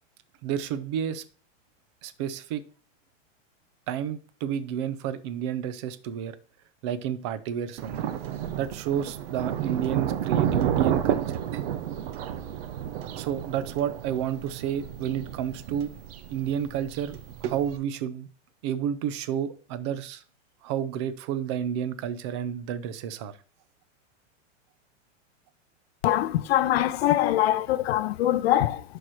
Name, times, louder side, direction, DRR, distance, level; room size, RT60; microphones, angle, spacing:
voice 1, 0.4-1.2 2.0-2.6 3.9-6.4 6.8-8.1 8.5-11.2 11.5-11.6 13.2-15.9 16.3-18.3 18.6-20.2 20.6-23.4, right 9 dB, 25° right, 0.4 m, -31 dB
Thunder, 7.8-17.8, right 10 dB, 50° right, 0.9 m, -31 dB
voice 2, 26.0-28.8, left 13 dB, 55° left, 0.6 m, -23 dB
11.0 x 4.7 x 4.3 m
supercardioid pair, 160°, 38 cm